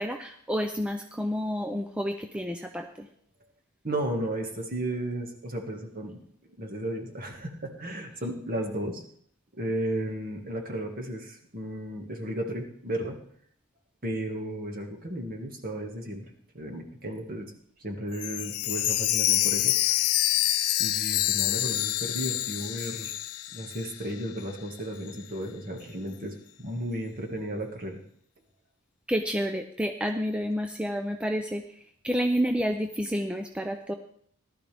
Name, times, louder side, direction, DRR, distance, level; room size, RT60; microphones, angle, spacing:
voice 1, 0.0-3.1 29.1-33.9, equal, 5° right, 5 dB, 0.5 m, -30 dB
voice 2, 3.8-6.2 6.6-9.0 9.5-13.2 14.0-17.5 17.8-20.1 20.8-23.1 23.5-28.0, right 1 dB, 40° right, 3 dB, 1.9 m, -34 dB
Chime, 18.1-24.1 24.4-24.5 25.1-25.2, left 14 dB, 85° left, 0.5 m, -27 dB
18.5 x 12.0 x 3.5 m, 0.64 s
head